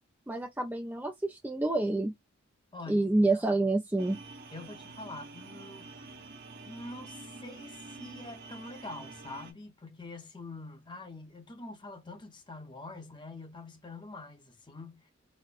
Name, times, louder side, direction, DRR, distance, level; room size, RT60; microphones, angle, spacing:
voice 1, 0.3-2.1 2.9-4.2, right 2 dB, 10° right, 0.3 m, -28 dB
voice 2, 2.7-3.4 4.5-6.3 6.6-15.1, left 2 dB, 25° left, 0.7 m, -45 dB
sound 1, 4.0-9.5, right 3 dB, 50° right, 0.9 m, -47 dB
4.2 x 2.0 x 2.4 m
head